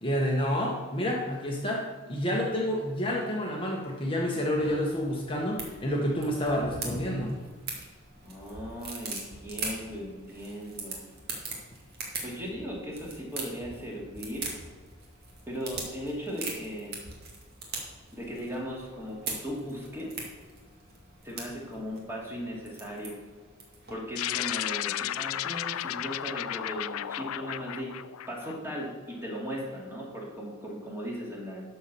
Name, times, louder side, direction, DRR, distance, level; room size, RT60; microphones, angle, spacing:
voice 1, 0.0-7.4, equal, 25° left, -1 dB, 1.2 m, -29 dB
sound 1, 4.5-23.9, right 3 dB, 50° right, 2.2 m, -41 dB
voice 2, 8.2-11.1 12.2-14.4 15.5-16.9 18.1-20.2 21.2-23.1 23.9-28.0 28.3-31.6, equal, 10° right, -3 dB, 2.5 m, -37 dB
sound 2, 24.1-28.8, left 12 dB, 85° left, 0.4 m, -33 dB
12.0 x 4.5 x 6.9 m, 1.4 s
head